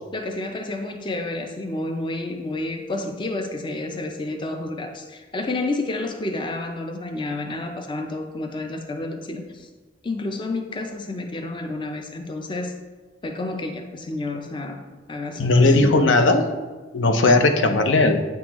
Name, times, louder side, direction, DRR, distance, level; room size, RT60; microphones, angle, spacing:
voice 1, 0.1-9.7 10.0-12.7 13.2-14.8 15.1-15.7 17.8-17.9, left 2 dB, 25° left, 5 dB, 0.4 m, -30 dB
voice 2, 15.4-16.5 16.9-18.3, left 2 dB, 80° left, 7 dB, 0.6 m, -17 dB
8.5 x 3.7 x 3.0 m, 1.3 s
head